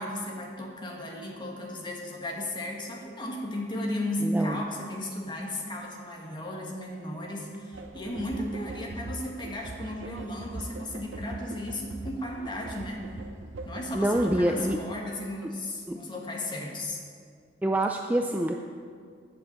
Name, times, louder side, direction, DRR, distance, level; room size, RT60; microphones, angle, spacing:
voice 1, 0.0-13.1 13.6-17.0, left 1 dB, 25° left, -1 dB, 1.6 m, -35 dB
voice 2, 4.2-4.6 13.9-14.8 15.4-15.5 15.9-16.0 17.6-18.5, right 1 dB, 10° right, 3 dB, 0.4 m, -26 dB
sound 1, 7.7-14.8, right 2 dB, 90° right, 0.7 m, -41 dB
8.9 x 7.0 x 7.2 m, 2.1 s
head